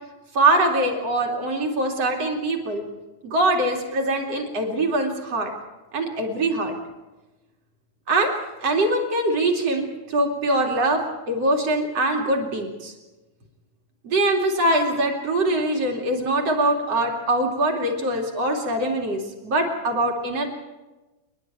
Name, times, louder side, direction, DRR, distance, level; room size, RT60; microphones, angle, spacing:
voice 1, 0.3-2.8 3.2-5.5 5.9-6.7 8.1-8.3 8.6-12.9 14.0-20.5, right 1 dB, 40° right, 2 dB, 2.9 m, -23 dB
28.5 x 11.0 x 8.8 m, 1.1 s
omnidirectional pair, 5.6 m